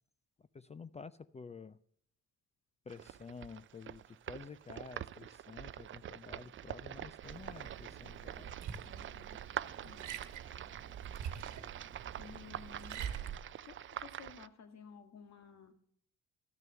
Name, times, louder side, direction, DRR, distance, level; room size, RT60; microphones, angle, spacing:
voice 1, 0.4-1.8 2.9-8.5 11.3-11.7, left 5 dB, 20° left, 16 dB, 0.4 m, -51 dB
sound 1, 2.9-14.5, right 11 dB, 40° right, 0.4 m, -46 dB
Liquid, 7.2-13.4, right 8 dB, 80° right, 1.3 m, -45 dB
voice 2, 8.9-9.4 9.8-10.2 12.2-13.1 13.6-15.7, left 6 dB, 65° left, 8 dB, 1.7 m, -54 dB
12.0 x 6.6 x 7.6 m, 0.65 s
cardioid pair, 90°, 30 cm